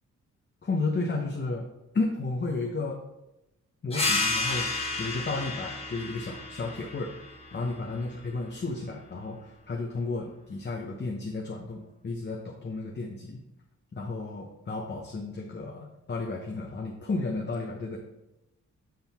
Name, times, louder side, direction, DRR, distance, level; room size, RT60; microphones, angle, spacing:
voice 1, 0.6-1.6 1.9-3.0 3.8-7.1 7.5-13.4 13.9-18.0, left 3 dB, 35° left, 0 dB, 0.9 m, -33 dB
sound 1, 3.9-9.1, left 3 dB, 20° left, 1.3 m, -32 dB
9.0 x 3.9 x 4.3 m, 0.92 s
wide cardioid pair, 105°, 31 cm